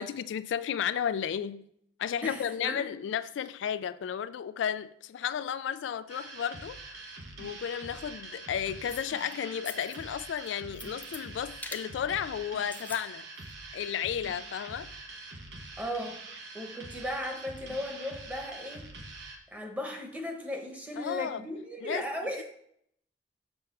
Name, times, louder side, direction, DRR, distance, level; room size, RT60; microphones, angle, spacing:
voice 1, 0.0-1.7 2.0-7.0 7.4-13.3 13.7-14.9 21.0-21.4 21.8-22.1, left 8 dB, 85° left, 0.3 m, -33 dB
voice 2, 2.2-2.8 15.8-16.2 16.5-18.8 19.5-22.4, left 1 dB, 10° right, 1.0 m, -36 dB
sound 1, 6.1-19.4, right 3 dB, 65° right, 1.0 m, -45 dB
sound 2, 8.9-9.3 9.6-10.0 10.4-11.2 11.6-11.9 12.6-13.1 13.4-13.5, left 3 dB, 10° left, 0.4 m, -43 dB
6.4 x 3.4 x 5.9 m
head